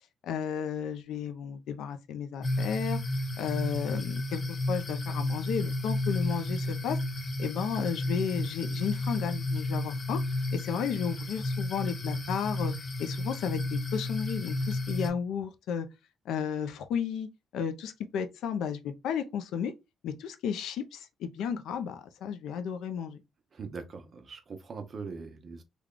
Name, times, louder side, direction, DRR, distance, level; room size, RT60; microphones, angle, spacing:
voice 1, 0.2-3.0 3.4-7.0 7.4-10.2 10.5-12.7 13.0-15.9 16.3-17.3 17.5-19.7 20.0-23.2, left 7 dB, 80° left, 0.5 m, -33 dB
sound 1, 2.4-15.1, left 1 dB, 30° left, 0.6 m, -32 dB
voice 2, 23.5-25.6, right 4 dB, 40° right, 0.8 m, -41 dB
3.4 x 2.3 x 3.7 m
cardioid pair, 125°, 0 cm